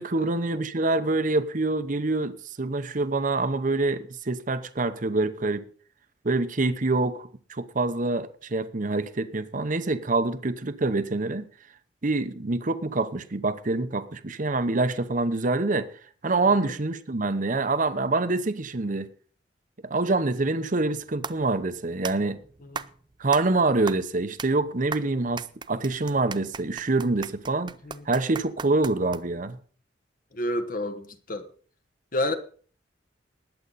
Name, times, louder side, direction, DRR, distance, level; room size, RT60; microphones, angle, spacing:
voice 1, 0.0-5.6 6.2-11.4 12.0-15.9 16.2-19.1 19.8-22.4 23.2-27.7 28.1-29.6, right 3 dB, 45° right, 0.9 m, -26 dB
sound 1, 20.8-29.5, right 5 dB, 25° right, 0.5 m, -39 dB
voice 2, 30.3-31.5 32.1-32.3, left 1 dB, 50° left, 1.2 m, -30 dB
19.5 x 8.1 x 4.1 m
head